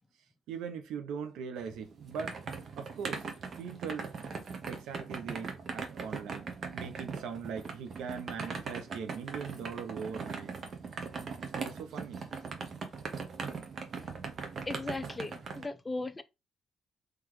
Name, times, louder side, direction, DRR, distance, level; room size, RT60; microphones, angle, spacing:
voice 1, 0.5-2.4 2.8-3.3 3.6-4.1 4.7-10.5 11.6-12.2, right 6 dB, 90° right, 0.7 m, -40 dB
sound 1, 1.6-15.6, right 5 dB, 50° right, 1.0 m, -40 dB
voice 2, 14.7-16.2, left 2 dB, 20° left, 0.5 m, -37 dB
3.9 x 3.2 x 3.1 m
cardioid pair, 90°, 0 cm